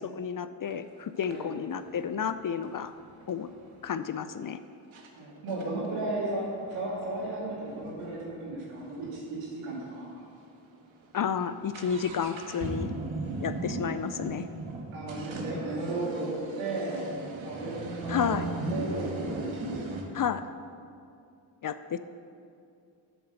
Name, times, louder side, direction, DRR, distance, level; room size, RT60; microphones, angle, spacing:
voice 1, 0.0-2.9 3.3-3.5 3.8-4.6 11.1-12.9 13.4-14.5 18.1-18.5 20.1-20.4 21.6-22.0, left 7 dB, 45° left, 12 dB, 0.5 m, -31 dB
sound 1, 0.7-0.8 1.2-3.9 4.5-4.6 4.9-5.1 5.5-9.2 9.4-9.5 9.7-9.8 10.4-10.6 10.9-20.0, right 2 dB, 70° right, 1.4 m, -38 dB
voice 2, 5.2-10.2 14.9-17.0 17.4-18.4 18.7-20.1, right 2 dB, 90° right, -5 dB, 2.5 m, -35 dB
8.3 x 6.8 x 6.7 m, 2.4 s
supercardioid pair, 50°, 49 cm